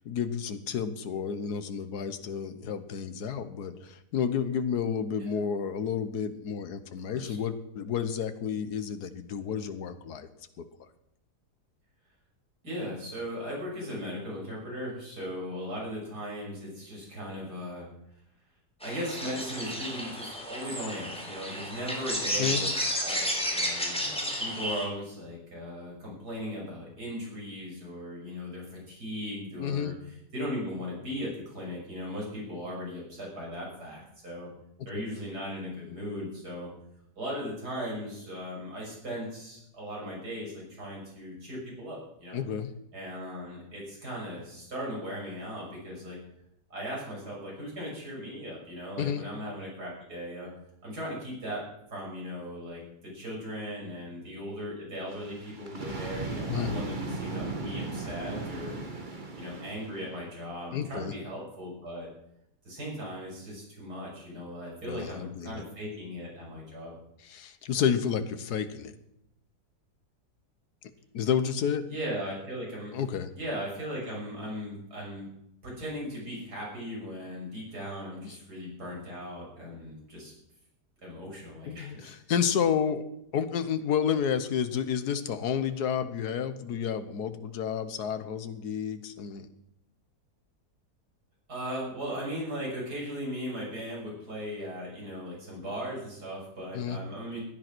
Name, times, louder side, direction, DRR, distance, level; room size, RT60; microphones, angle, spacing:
voice 1, 0.0-10.3 10.6-10.7 22.4-22.6 29.6-29.9 42.3-42.7 49.0-49.2 56.5-56.7 60.7-61.1 64.9-65.6 67.2-68.9 71.1-71.8 72.9-73.3 78.2-78.4 81.7-83.1 83.3-89.5 96.7-97.0, left 7 dB, 75° left, 11 dB, 1.6 m, -30 dB
voice 2, 12.6-17.9 18.8-22.7 23.0-34.5 34.9-36.7 37.2-42.4 42.9-46.2 46.7-50.5 50.8-51.6 51.9-58.7 59.4-62.1 62.6-66.9 71.9-73.0 73.3-75.3 75.6-80.3 81.0-82.1 91.5-97.4, equal, 75° right, -3 dB, 6.9 m, -38 dB
sound 1, 18.8-24.8, equal, 5° left, 3.5 m, -32 dB
sound 2, 55.1-60.5 61.1-61.3, right 3 dB, 30° right, 2.0 m, -37 dB
15.5 x 10.5 x 6.1 m, 0.79 s
omnidirectional pair, 1.7 m